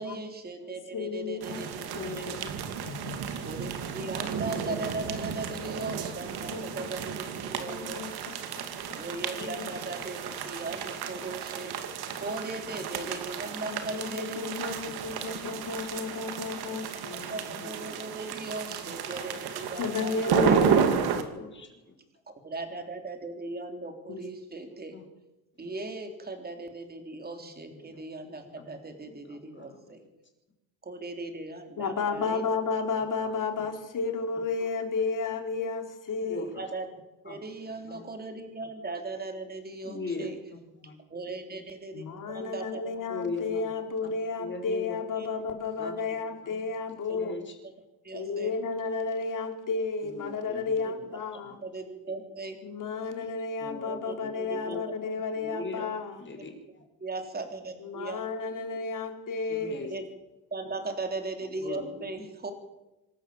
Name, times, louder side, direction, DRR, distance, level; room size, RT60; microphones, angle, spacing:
voice 1, 0.0-2.3 3.4-8.0 8.9-11.9 12.2-14.9 15.3-15.6 17.1-20.5 22.4-24.9 25.6-30.0 30.8-32.4 34.6-34.7 36.5-36.9 37.2-40.4 41.1-42.9 45.1-45.3 47.1-47.2 48.0-48.5 50.8-50.9 51.6-52.6 53.9-54.8 57.0-58.2 59.8-60.1 60.5-62.5, right 2 dB, 25° right, 5 dB, 3.7 m, -38 dB
voice 2, 0.9-2.0 2.3-2.5 2.8-3.3 6.5-7.2 7.5-9.0 9.4-9.8 13.7-17.5 19.8-21.1 24.1-24.2 31.8-36.5 41.9-47.4 48.1-51.6 52.6-56.2 57.8-60.0, left 4 dB, 55° left, 5 dB, 3.6 m, -33 dB
sound 1, 1.4-21.2, right 7 dB, 85° right, 2.5 m, -32 dB
voice 3, 1.9-2.4 4.6-4.8 12.7-12.8 14.8-14.9 17.6-17.7 18.3-18.5 18.8-18.9 20.2-21.8 24.9-25.1 25.5-25.7 27.4-28.0 28.5-29.9 32.1-32.2 33.2-33.7 36.2-36.5 37.3-37.4 37.9-38.0 39.8-41.0 43.1-43.7 44.0-44.1 44.4-45.0 45.8-46.0 46.4-46.7 47.1-47.5 50.0-50.7 51.4-51.6 53.6-53.9 54.2-54.8 55.4-55.9 56.2-56.8 59.5-59.9 61.6-62.1, left 3 dB, 30° left, 3 dB, 5.3 m, -41 dB
26.0 x 13.5 x 7.7 m, 0.99 s
cardioid pair, 130°, 37 cm